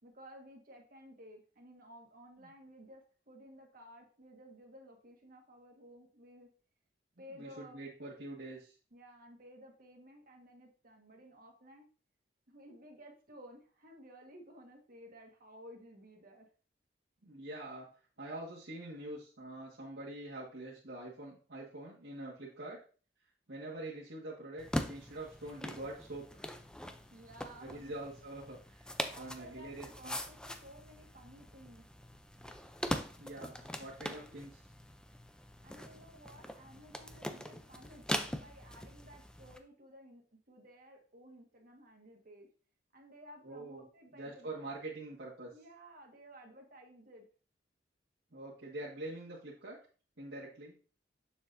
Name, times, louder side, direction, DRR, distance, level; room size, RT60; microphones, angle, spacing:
voice 1, 0.0-6.5 7.2-7.8 8.9-11.8 12.5-16.5 27.1-27.9 29.1-31.8 33.6-33.7 34.1-34.4 35.6-42.5 42.9-44.8 45.5-47.2, equal, 50° right, 2 dB, 1.6 m, -55 dB
voice 2, 7.3-8.7 17.2-17.9 18.2-22.8 23.5-26.4 27.6-30.2 33.2-34.6 43.4-43.8 44.1-45.5 48.3-49.8 50.2-50.7, right 2 dB, 75° right, -7 dB, 1.7 m, -45 dB
sound 1, 24.6-39.6, left 1 dB, 5° left, 0.4 m, -42 dB
6.9 x 6.7 x 2.6 m, 0.39 s
head